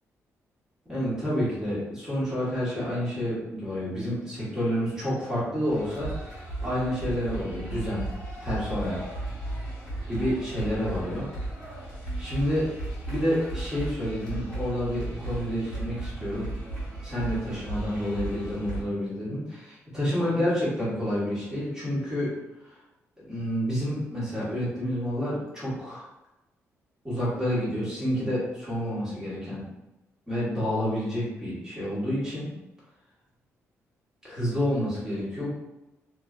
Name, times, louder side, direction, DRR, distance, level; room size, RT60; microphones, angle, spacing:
voice 1, 0.9-6.1 6.4-8.0 8.4-9.0 10.1-11.3 12.2-12.7 13.1-16.5 17.0-22.3 22.6-22.8 23.2-26.0 27.0-29.6 30.3-32.5 34.2-35.5, equal, 10° right, -9 dB, 1.2 m, -29 dB
sound 1, 5.7-18.8, right 2 dB, 15° left, 1.4 m, -35 dB
3.2 x 2.2 x 2.3 m, 0.97 s
cardioid pair, 160°, 5 cm